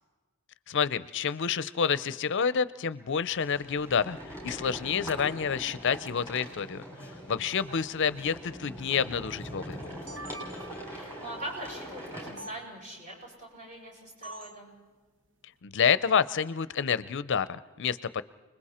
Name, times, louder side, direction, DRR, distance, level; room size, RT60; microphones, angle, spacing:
voice 1, 0.7-4.2 4.4-6.8 7.3-9.9 15.6-18.2, left 6 dB, 55° left, 16 dB, 0.5 m, -28 dB
sound 1, 3.3-12.3, equal, 15° right, 6.6 m, -42 dB
voice 2, 4.8-5.3 7.7-8.0 10.9-14.7, right 1 dB, 35° right, -2 dB, 7.2 m, -43 dB
sound 2, 9.7-11.0 12.4-12.5 14.2-14.6, right 1 dB, 60° right, 1.3 m, -44 dB
30.0 x 21.0 x 4.3 m, 1.3 s
head